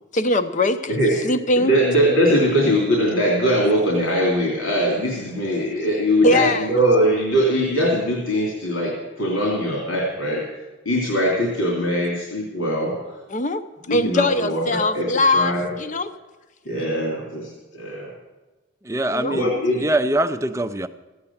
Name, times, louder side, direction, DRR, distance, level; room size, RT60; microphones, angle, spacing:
voice 1, 0.1-0.9 1.2-1.7 6.2-6.8 13.3-13.6 13.9-16.1 19.1-19.4, left 2 dB, 35° left, 10 dB, 0.7 m, -21 dB
voice 2, 1.5-10.4 10.8-12.9 13.9-15.0 15.3-15.6 16.6-17.5 17.7-18.1 19.3-19.8, equal, 90° left, -3 dB, 3.0 m, -21 dB
voice 3, 18.8-19.5 19.8-20.9, right 1 dB, 15° right, 10 dB, 0.4 m, -23 dB
14.5 x 8.8 x 7.1 m, 1.2 s
head